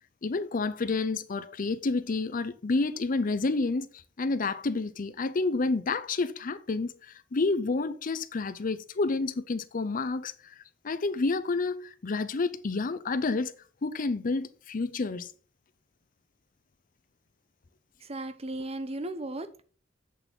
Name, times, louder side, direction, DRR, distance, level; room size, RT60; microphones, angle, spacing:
voice 1, 0.2-10.5 10.8-13.6 13.8-15.3, left 3 dB, 45° left, 0.6 m, -29 dB
voice 2, 18.0-19.6, right 2 dB, 35° right, 0.8 m, -36 dB
8.2 x 7.2 x 4.0 m
head